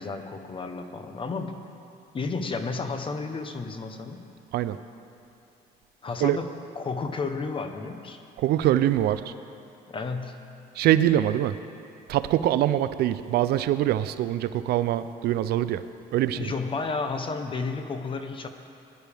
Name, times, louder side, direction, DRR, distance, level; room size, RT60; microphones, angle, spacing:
voice 1, 0.0-1.6 2.1-4.2 6.0-8.2 9.9-10.4 16.3-18.5, left 4 dB, 30° left, 7 dB, 1.0 m, -32 dB
voice 2, 8.4-9.2 10.8-11.6 12.1-15.8 16.1-16.5, right 12 dB, 70° right, 13 dB, 0.5 m, -23 dB
20.0 x 10.5 x 3.5 m, 2.6 s
cardioid pair, 110°, 17 cm